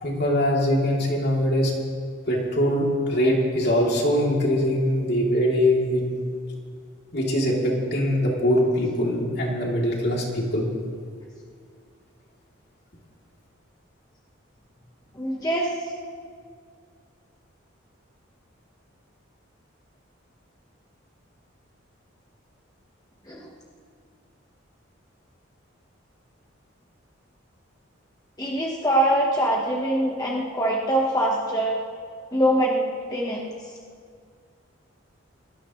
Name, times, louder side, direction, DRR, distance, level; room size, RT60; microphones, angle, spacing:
voice 1, 0.0-1.7 2.3-6.0 7.1-10.7, equal, 55° left, -3 dB, 3.2 m, -22 dB
voice 2, 15.2-15.7 23.3-23.5 28.4-31.8 32.3-33.5, right 1 dB, 20° left, -2 dB, 1.3 m, -23 dB
24.0 x 18.5 x 3.2 m, 2.1 s
head